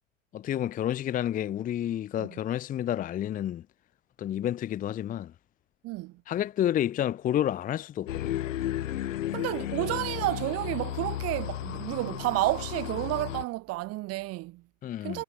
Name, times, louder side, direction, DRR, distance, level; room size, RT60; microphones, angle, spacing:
voice 1, 0.3-3.6 4.2-5.3 6.3-8.3 14.8-15.2, left 11 dB, 20° left, 0.9 m, -30 dB
voice 2, 5.8-6.2 9.3-14.6 15.0-15.2, right 20 dB, 35° right, 1.9 m, -31 dB
sound 1, 8.1-13.4, left 13 dB, 70° left, 1.8 m, -34 dB
hypercardioid pair, 110°, 40 cm